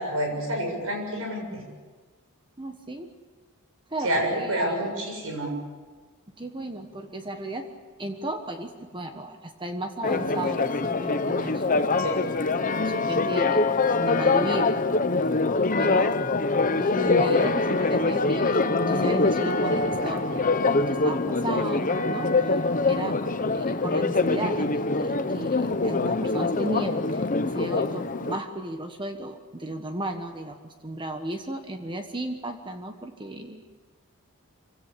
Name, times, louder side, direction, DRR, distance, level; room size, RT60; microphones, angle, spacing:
voice 1, 0.0-1.6 4.0-5.5 12.0-12.2, right 1 dB, 70° right, 2 dB, 7.3 m, -28 dB
voice 2, 2.6-3.1 3.9-4.9 6.4-7.7 8.0-11.9 12.8-13.6 14.0-14.9 15.2-15.4 15.8-16.3 16.7-20.5 20.9-22.6 22.9-23.2 23.5-27.2 27.5-33.7, right 1 dB, 20° right, 6 dB, 1.3 m, -34 dB
Church bell, 10.0-28.4, left 3 dB, 35° left, 0.9 m, -24 dB
25.5 x 17.0 x 8.6 m, 1.4 s
head